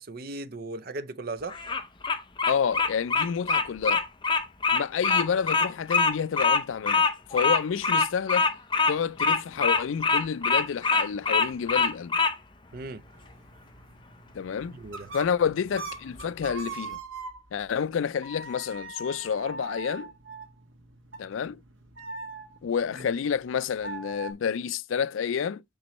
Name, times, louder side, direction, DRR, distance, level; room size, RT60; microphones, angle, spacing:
voice 1, 0.0-1.6 12.7-13.0 14.7-15.1 22.9-23.1, right 2 dB, 50° right, 0.5 m, -37 dB
Bird vocalization bird call bird song, 1.5-12.3, left 4 dB, 25° left, 0.6 m, -24 dB
voice 2, 2.5-4.0 4.7-8.5 8.9-12.1 14.3-14.8 15.1-17.0 17.5-20.1 21.2-21.6 22.6-25.6, left 7 dB, 80° left, 0.4 m, -29 dB
sound 1, 12.7-17.7 18.2-24.3, right 3 dB, 80° right, 1.6 m, -42 dB
7.2 x 5.2 x 3.0 m
head